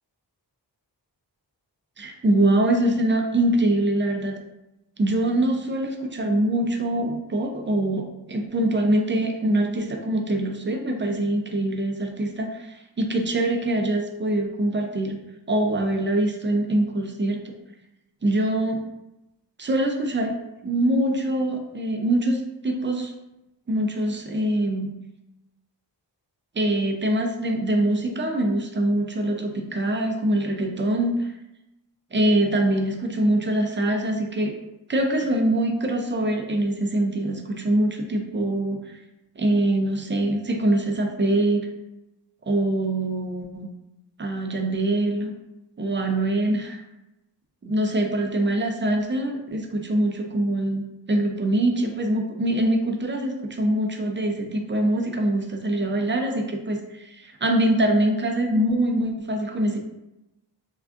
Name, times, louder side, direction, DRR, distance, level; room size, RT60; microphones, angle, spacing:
voice 1, 2.0-4.4 5.0-15.2 15.5-17.4 18.2-18.9 19.6-20.4 20.6-23.1 23.7-24.9 26.5-31.3 32.1-34.5 34.9-39.0 39.4-41.7 42.4-43.7 44.2-45.3 45.8-46.8 47.6-59.8, right 1 dB, 30° right, 3 dB, 0.4 m, -24 dB
3.5 x 2.3 x 2.4 m, 0.93 s
wide cardioid pair, 80°, 43 cm